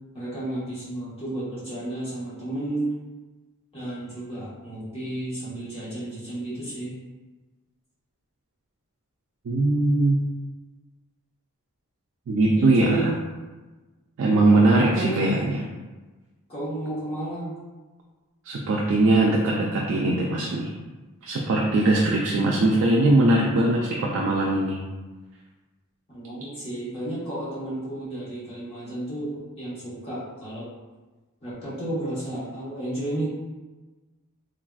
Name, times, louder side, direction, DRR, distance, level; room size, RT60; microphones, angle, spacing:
voice 1, 0.1-2.9 3.7-7.0 12.6-13.2 14.8-15.3 16.5-17.5 26.1-30.7 31.4-33.3, right 1 dB, 25° left, -10 dB, 1.0 m, -32 dB
voice 2, 9.5-10.2 12.3-13.1 14.2-15.6 18.5-20.7 21.2-24.8, right 2 dB, 60° right, -2 dB, 0.3 m, -21 dB
3.3 x 2.4 x 2.3 m, 1.2 s
head